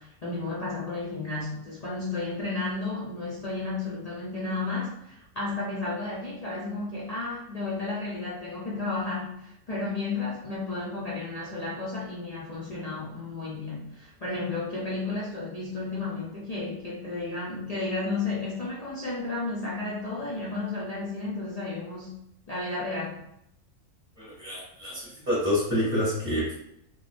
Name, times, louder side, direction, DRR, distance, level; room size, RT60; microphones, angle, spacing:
voice 1, 0.0-22.2 22.5-23.2, left 3 dB, 65° left, -6 dB, 0.3 m, -33 dB
voice 2, 24.2-26.5, left 1 dB, 35° right, -10 dB, 1.5 m, -28 dB
3.6 x 2.2 x 2.4 m, 0.77 s
omnidirectional pair, 1.5 m